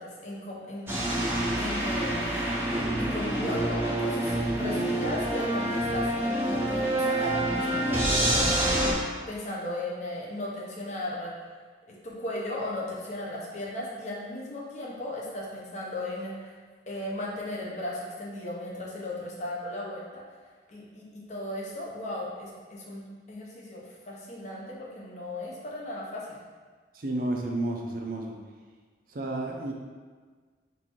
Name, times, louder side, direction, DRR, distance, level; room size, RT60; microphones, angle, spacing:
voice 1, 0.0-2.3 3.0-11.4 11.9-16.5 16.9-20.2 20.7-26.4, left 1 dB, 40° left, -4 dB, 0.9 m, -36 dB
sound 1, 0.9-8.9, right 1 dB, 15° right, 0.7 m, -27 dB
voice 2, 27.0-28.4 29.1-29.7, right 1 dB, 55° right, 0 dB, 0.6 m, -31 dB
4.1 x 2.7 x 4.5 m, 1.5 s
head